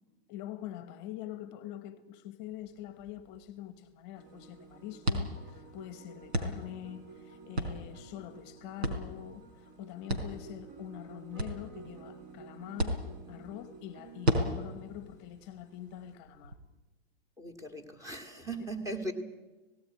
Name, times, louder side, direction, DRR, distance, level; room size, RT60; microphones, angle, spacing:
voice 1, 0.3-13.0 13.3-16.6, left 12 dB, 35° left, 1.1 m, -44 dB
sound 1, 2.4-16.6, right 1 dB, 85° right, 4.0 m, -37 dB
sound 2, 4.2-16.2, right 4 dB, 35° right, 4.0 m, -53 dB
voice 2, 17.4-19.1, right 2 dB, 10° right, 2.1 m, -38 dB
18.0 x 17.5 x 9.6 m
hypercardioid pair, 130°, 31 cm